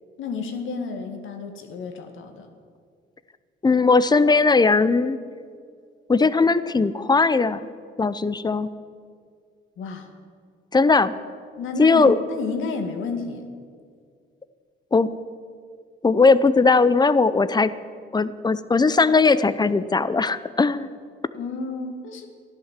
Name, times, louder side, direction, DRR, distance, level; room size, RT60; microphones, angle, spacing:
voice 1, 0.2-2.5 9.8-10.1 11.6-13.5 21.3-22.3, left 4 dB, 80° left, 5 dB, 2.0 m, -31 dB
voice 2, 3.6-5.2 6.1-7.6 8.0-8.7 10.7-11.1 11.8-12.2 14.9-15.2 16.0-17.7 18.1-20.9, left 4 dB, 20° left, 15 dB, 0.7 m, -18 dB
14.0 x 11.5 x 7.5 m, 2.1 s
cardioid pair, 90°, 20 cm